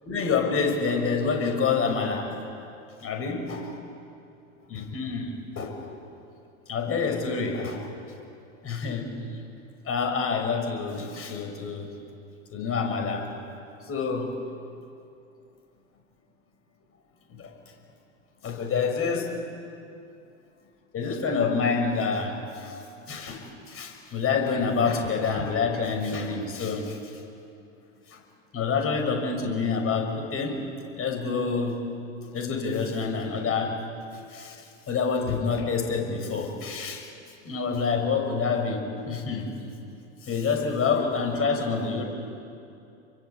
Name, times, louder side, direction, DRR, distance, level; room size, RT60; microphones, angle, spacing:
voice 1, 0.0-2.3 3.0-3.6 4.7-5.9 6.7-7.9 8.6-9.4 9.8-11.9 12.5-13.3 13.9-14.4 17.3-17.5 18.4-19.4 20.9-22.8 23.1-27.2 28.1-28.2 28.5-30.6 31.0-31.8 32.3-33.9 34.3-37.1 37.4-39.6 40.2-42.0, left 5 dB, 35° left, 3 dB, 6.6 m, -27 dB
29.0 x 24.0 x 8.3 m, 2.7 s
hypercardioid pair, 85°, 40 cm